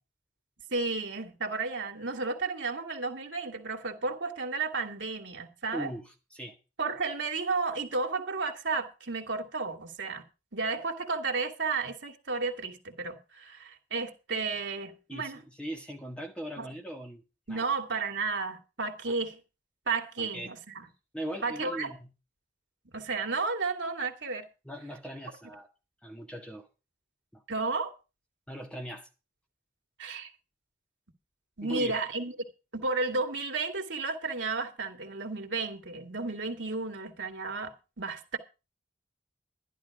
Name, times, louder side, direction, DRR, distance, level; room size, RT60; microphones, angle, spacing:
voice 1, 0.7-5.9 6.8-10.2 10.5-15.4 16.6-16.7 17.5-19.4 19.9-20.9 21.4-21.9 22.9-24.5 27.5-27.9 30.0-30.3 31.6-32.3 32.7-38.4, right 4 dB, 80° right, 2.1 m, -32 dB
voice 2, 5.7-6.6 15.1-17.2 17.5-17.7 20.2-20.5 21.1-22.1 24.6-25.7 26.0-26.7 27.3-27.4 28.5-29.1 31.6-32.0, equal, 5° left, 1.8 m, -40 dB
11.5 x 11.0 x 4.8 m
head